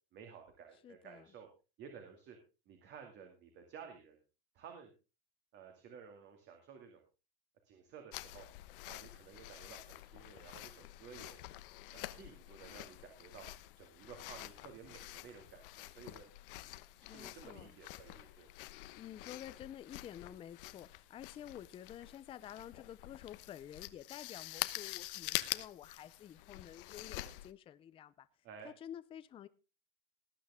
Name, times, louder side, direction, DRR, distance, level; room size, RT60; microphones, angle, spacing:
voice 1, 0.1-1.5 1.8-2.4 2.7-4.2 4.5-4.9 5.5-7.0 7.6-8.5 8.9-11.4 11.9-13.5 13.8-16.3 17.0-18.5 28.4-28.7, right 7 dB, 35° right, 2.3 m, -54 dB
voice 2, 0.8-1.3 17.1-17.7 19.0-28.3 28.6-29.5, left 10 dB, 20° left, 0.5 m, -50 dB
sound 1, 8.1-27.5, left 18 dB, 65° left, 1.0 m, -46 dB
18.5 x 9.0 x 3.6 m
supercardioid pair, 145°, 29 cm